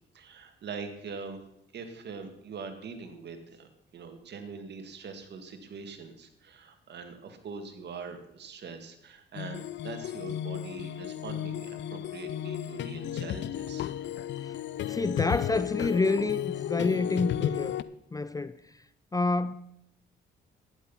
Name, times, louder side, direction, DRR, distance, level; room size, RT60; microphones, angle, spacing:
voice 1, 0.1-1.4 1.7-13.9, right 5 dB, 60° right, 2.0 m, -43 dB
sound 1, 9.3-17.8, left 11 dB, 65° left, 0.6 m, -33 dB
voice 2, 14.9-17.8 18.1-18.5 19.1-19.5, left 3 dB, 20° left, 0.4 m, -28 dB
11.5 x 10.0 x 5.6 m
cardioid pair, 90°, 20 cm